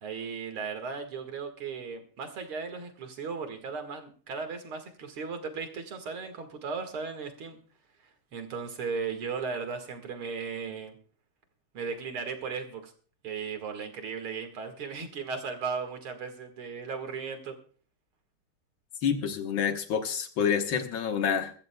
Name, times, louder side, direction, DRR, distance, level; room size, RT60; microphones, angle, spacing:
voice 1, 0.0-7.6 8.3-11.0 11.7-12.9 13.2-17.6, right 5 dB, 90° right, 6 dB, 2.7 m, -36 dB
voice 2, 19.0-21.5, left 7 dB, 70° left, 6 dB, 2.0 m, -28 dB
23.5 x 13.5 x 2.3 m, 0.42 s
omnidirectional pair, 2.3 m